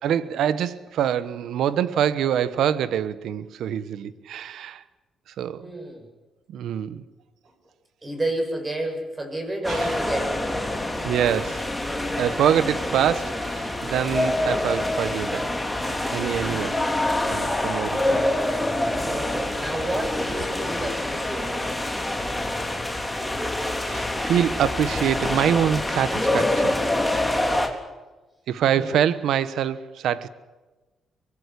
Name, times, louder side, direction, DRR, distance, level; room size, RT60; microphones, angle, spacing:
voice 1, 0.0-4.8 5.4-5.7 6.5-7.0 9.7-10.0 11.0-11.7 12.2-15.5 15.8-16.8 17.3-18.2 23.8-26.8 28.5-30.3, right 9 dB, 75° right, 1.2 m, -25 dB
voice 2, 5.6-6.0 8.0-10.5 16.4-16.7 19.1-21.7 28.7-28.9, right 1 dB, 25° right, 7.6 m, -30 dB
sound 1, 9.6-27.7, left 1 dB, 5° left, 3.7 m, -26 dB
24.0 x 21.0 x 8.4 m
cardioid pair, 90°, 0 cm